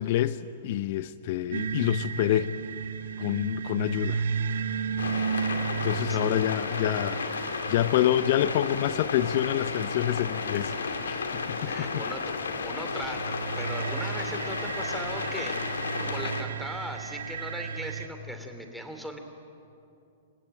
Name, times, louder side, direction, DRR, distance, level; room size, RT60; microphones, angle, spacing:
voice 1, 0.0-2.5 3.2-4.2 4.5-4.8 5.8-12.0, left 12 dB, 55° left, 14 dB, 0.7 m, -27 dB
sound 1, 1.5-18.1, right 6 dB, 75° right, 1.0 m, -35 dB
sound 2, 5.0-16.4, left 4 dB, 90° left, 2.2 m, -33 dB
voice 2, 11.6-12.3 12.6-19.2, right 1 dB, ahead, 4 dB, 3.1 m, -39 dB
29.0 x 15.0 x 9.1 m, 2.7 s
hypercardioid pair, 120°, 0 cm